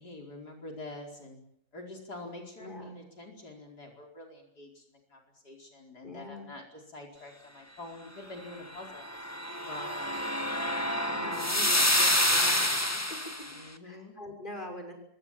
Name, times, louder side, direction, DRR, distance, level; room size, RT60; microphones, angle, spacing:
voice 1, 0.0-1.4 1.7-9.1 9.6-10.3 11.2-12.1 13.5-14.2, left 2 dB, 80° left, 1 dB, 5.3 m, -46 dB
voice 2, 2.6-3.0 6.0-6.5 11.1-12.7 13.0-14.9, left 1 dB, 30° left, 5 dB, 6.6 m, -43 dB
sound 1, 8.9-13.5, left 1 dB, 10° left, 1.9 m, -28 dB
26.5 x 23.5 x 7.6 m, 0.70 s
omnidirectional pair, 1.7 m